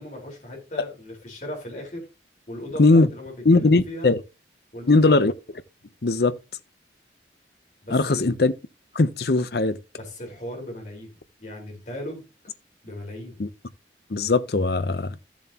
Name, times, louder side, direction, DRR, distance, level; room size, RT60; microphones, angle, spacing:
voice 1, 0.0-2.1 2.5-4.1 4.7-5.2 7.8-8.3 10.0-12.2 12.8-13.4, left 1 dB, 40° left, 4.2 m, -37 dB
voice 2, 3.4-4.2 4.9-5.3 6.0-6.3 7.9-8.5 8.9-9.8 13.4-13.5 14.1-15.2, left 3 dB, 55° left, 0.7 m, -19 dB
14.0 x 7.2 x 2.9 m
head